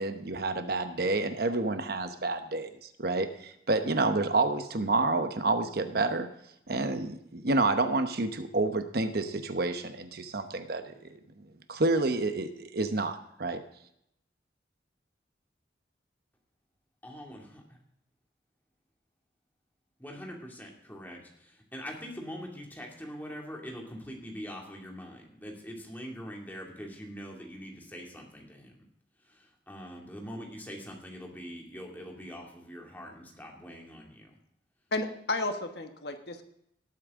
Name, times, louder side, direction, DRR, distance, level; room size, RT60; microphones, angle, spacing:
voice 1, 0.0-2.7 3.0-6.3 6.7-11.2 11.7-13.6, right 2 dB, 55° right, 9 dB, 0.9 m, -29 dB
voice 2, 17.0-17.4 20.0-28.8 29.3-34.3, equal, 10° left, 0 dB, 2.5 m, -43 dB
voice 3, 34.9-36.4, left 2 dB, 60° left, 6 dB, 1.3 m, -32 dB
18.5 x 8.6 x 3.7 m, 0.74 s
head